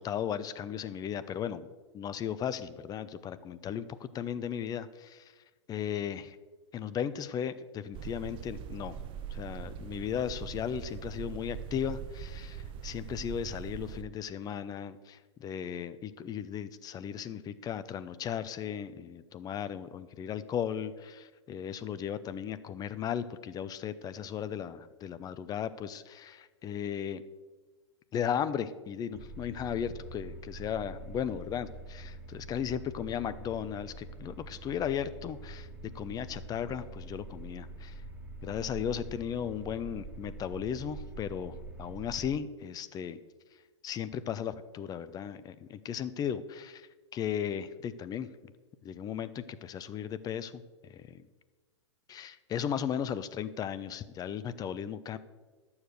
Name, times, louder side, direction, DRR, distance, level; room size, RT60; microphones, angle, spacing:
voice 1, 0.0-1.7 1.9-5.3 5.7-6.4 6.7-9.0 9.3-27.2 28.1-35.7 35.9-38.0 38.4-43.2 43.8-48.3 48.8-51.2 52.1-55.2, left 8 dB, 25° left, 14 dB, 0.7 m, -36 dB
sound 1, 7.9-14.0, right 8 dB, 35° right, 0.8 m, -42 dB
sound 2, 29.1-42.4, right 2 dB, 10° right, 1.5 m, -45 dB
12.5 x 7.2 x 6.6 m, 1.3 s
hypercardioid pair, 105°, 15 cm